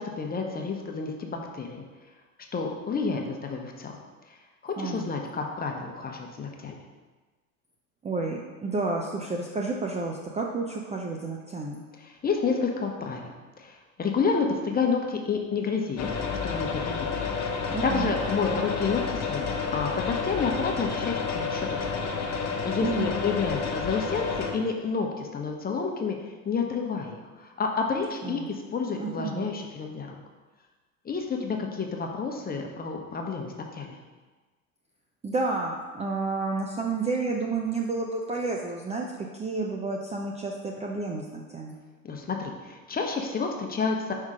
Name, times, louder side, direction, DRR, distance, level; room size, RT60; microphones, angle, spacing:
voice 1, 0.0-1.8 2.5-3.9 4.6-6.8 12.0-16.2 16.4-17.1 17.5-22.0 22.6-26.2 26.4-30.2 31.0-34.0 42.0-44.1, left 5 dB, 20° left, 2 dB, 0.9 m, -30 dB
voice 2, 4.8-5.1 8.0-11.8 17.7-18.1 22.8-23.2 28.2-28.5 28.9-29.6 35.2-41.8, right 3 dB, 15° right, 0 dB, 0.5 m, -31 dB
sound 1, 16.0-24.5, left 5 dB, 40° left, 1.2 m, -30 dB
5.5 x 3.6 x 4.9 m, 1.3 s
hypercardioid pair, 80°, 43 cm